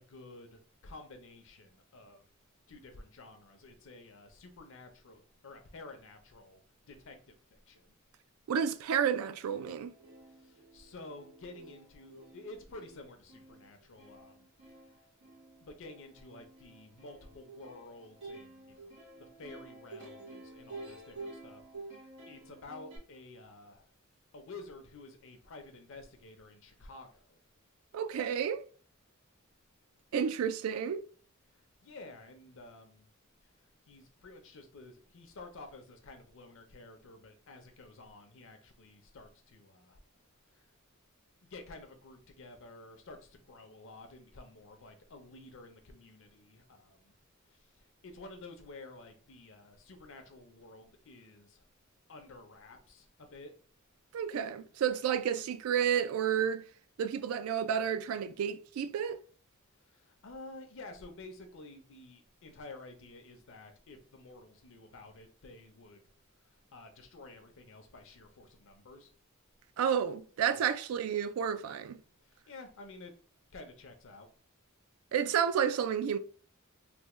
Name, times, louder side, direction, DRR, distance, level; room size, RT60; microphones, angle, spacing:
voice 1, 0.0-2.2 2.7-7.9 10.3-15.0 15.6-18.9 19.2-21.6 21.9-23.9 24.3-27.4 31.5-33.1 33.4-33.5 33.9-40.0 40.5-40.7 41.4-47.1 47.5-51.6 52.1-53.5 59.8-66.1 66.4-69.1 70.5-70.6 72.2-73.1 73.5-74.3, left 2 dB, 65° left, 0.6 m, -51 dB
voice 2, 8.5-9.9 27.9-28.6 30.1-31.0 54.1-56.6 57.0-59.2 69.8-72.0 75.1-76.2, right 8 dB, 75° right, 0.3 m, -31 dB
Plucked string instrument, 9.5-23.0, right 2 dB, 60° right, 1.3 m, -51 dB
3.3 x 2.1 x 3.0 m
head